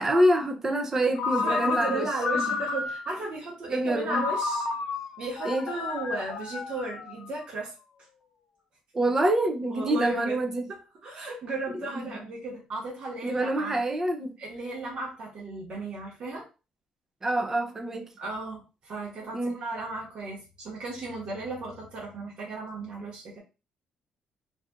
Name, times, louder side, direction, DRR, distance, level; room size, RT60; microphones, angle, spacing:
voice 1, 0.0-2.1 2.3-2.5 3.7-4.3 5.4-5.7 8.9-10.7 11.7-12.2 13.2-14.4 17.2-18.1 19.3-19.6, right 1 dB, 20° right, 0.5 m, -26 dB
Ringtone, 1.2-3.2 4.1-7.4, left 4 dB, 70° left, 0.5 m, -31 dB
voice 2, 1.4-4.7 5.2-7.7 9.7-10.4 10.7-13.8 14.4-16.5 18.2-23.4, right 2 dB, 45° right, 1.2 m, -35 dB
2.7 x 2.4 x 3.4 m
cardioid pair, 160°, 2 cm